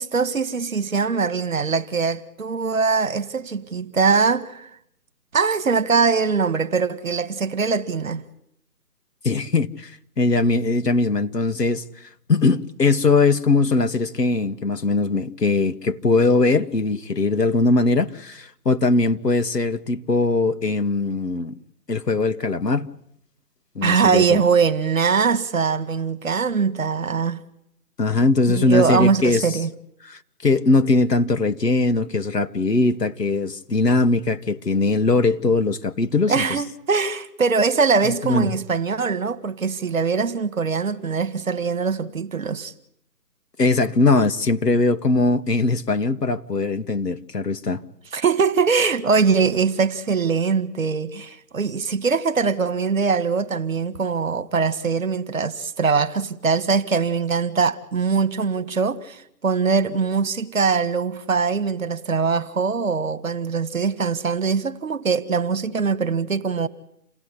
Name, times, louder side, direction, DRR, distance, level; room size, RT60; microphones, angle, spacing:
voice 1, 0.0-4.7 5.3-8.2 23.8-27.4 28.5-29.7 36.3-42.7 48.1-66.7, right 5 dB, 55° right, 2.0 m, -22 dB
voice 2, 9.2-9.9 10.2-21.5 21.9-22.9 23.7-24.4 28.0-29.6 30.1-36.6 38.0-38.5 43.6-47.8, left 3 dB, 85° left, 1.7 m, -20 dB
28.5 x 17.5 x 9.9 m
figure-of-eight pair, 160°, 47 cm